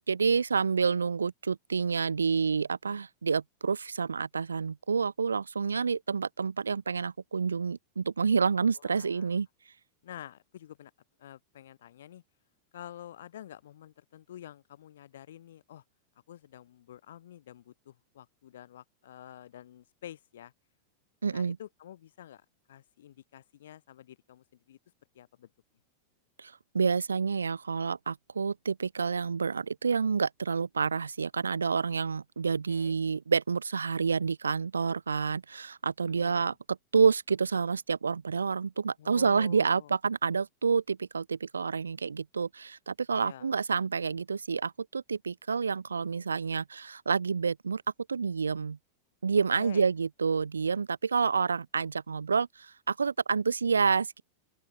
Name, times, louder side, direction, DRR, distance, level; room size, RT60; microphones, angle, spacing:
voice 1, 0.1-9.5 21.2-21.6 26.4-47.8 48.1-48.8 49.2-54.2, right 5 dB, 75° right, 0.5 m, -28 dB
voice 2, 8.7-9.3 10.0-10.9 11.2-12.2 12.7-15.8 16.3-20.5 21.3-22.4 22.7-24.8 25.1-25.5 32.7-33.0 36.0-36.5 39.0-39.9 43.1-43.5 49.5-49.9, left 11 dB, 60° left, 4.8 m, -48 dB
open air
figure-of-eight pair, 90°, 0 cm